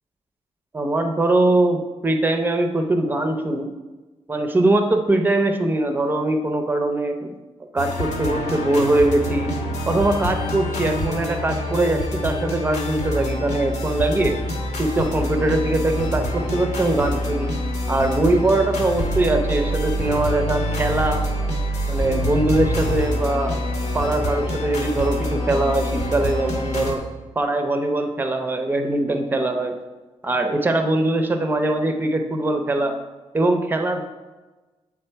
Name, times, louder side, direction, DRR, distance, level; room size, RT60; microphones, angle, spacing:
voice 1, 0.7-3.7 4.3-7.3 7.7-9.5 9.9-14.4 14.8-17.5 17.9-21.2 21.9-23.6 23.9-27.0 27.4-29.8 30.2-33.0 33.3-34.0, right 2 dB, 15° right, 6 dB, 0.5 m, -21 dB
sound 1, 7.8-27.0, equal, 75° left, 1.1 m, -26 dB
7.9 x 3.6 x 4.4 m, 1.2 s
wide cardioid pair, 160°, 12 cm